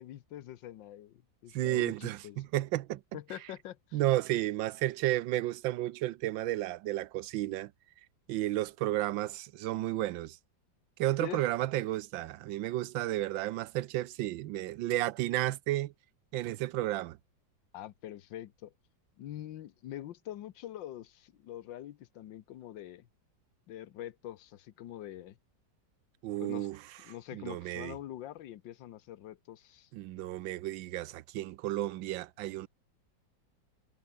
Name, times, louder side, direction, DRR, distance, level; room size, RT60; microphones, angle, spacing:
voice 1, 0.0-2.5 3.1-4.0 11.2-11.4 17.7-18.7 19.2-23.1 23.7-25.4 26.4-26.7 27.0-29.9, left 12 dB, 80° left, 1.6 m, -44 dB
voice 2, 1.5-3.0 3.9-7.7 8.3-10.4 11.0-15.9 16.3-17.2 26.2-26.8 27.3-27.9 29.9-32.7, right 15 dB, 90° right, 1.4 m, -32 dB
omnidirectional pair, 2.0 m